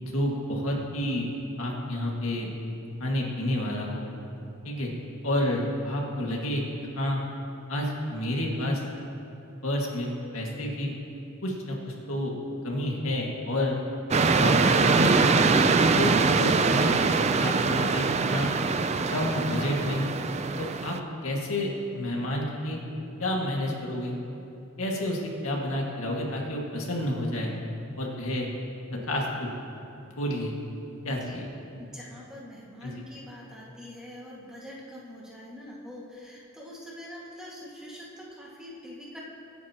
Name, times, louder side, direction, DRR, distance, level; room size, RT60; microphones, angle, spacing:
voice 1, 0.0-1.3 1.6-2.5 3.0-4.1 4.6-4.9 5.2-6.6 7.0-7.2 7.7-8.8 9.6-10.1 10.3-10.9 11.4-12.3 12.6-13.8 14.3-15.6 15.9-16.1 16.4-17.0 17.4-18.5 19.1-20.1 20.6-20.9 21.2-22.8 23.2-24.1 24.8-27.5 28.0-28.5 29.1-29.5 30.2-30.5 31.0-31.4 32.8-32.9, left 1 dB, 80° left, -2 dB, 2.0 m, -29 dB
sound 1, 14.1-21.0, right 4 dB, 30° right, 0.4 m, -23 dB
voice 2, 31.0-31.5 31.8-39.2, left 1 dB, 5° right, -6 dB, 1.9 m, -44 dB
24.0 x 9.3 x 3.0 m, 2.8 s
head